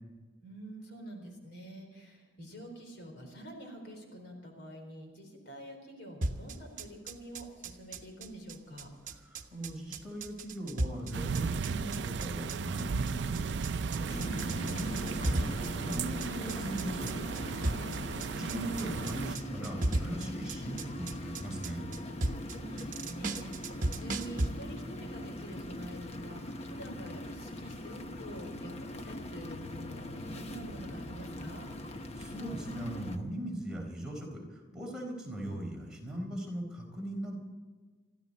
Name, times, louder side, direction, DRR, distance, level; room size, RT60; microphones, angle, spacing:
voice 1, 0.4-8.9 17.6-17.9 22.5-31.7, right 1 dB, 65° left, 3 dB, 4.0 m, -47 dB
sound 1, 6.2-24.5, right 2 dB, 45° right, 1.1 m, -36 dB
voice 2, 9.2-17.1 18.3-21.9 32.2-37.4, right 1 dB, 5° right, -3 dB, 4.2 m, -39 dB
sound 2, 11.1-19.4, right 5 dB, 75° right, 0.4 m, -36 dB
sound 3, 14.1-33.2, left 1 dB, 35° left, 1.1 m, -42 dB
23.5 x 14.5 x 4.2 m, 1.4 s
head